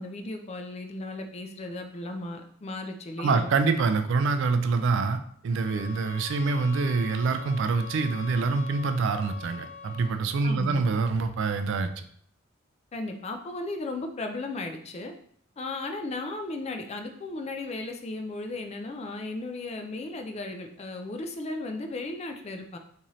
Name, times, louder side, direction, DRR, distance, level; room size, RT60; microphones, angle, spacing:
voice 1, 0.0-3.5 10.4-10.8 12.9-15.1 15.6-22.8, left 2 dB, 30° left, 5 dB, 0.4 m, -35 dB
voice 2, 3.2-11.9, right 4 dB, 55° right, 9 dB, 0.3 m, -26 dB
sound 1, 5.5-10.3, left 7 dB, 45° left, 0.9 m, -43 dB
3.9 x 2.7 x 3.0 m, 0.63 s
head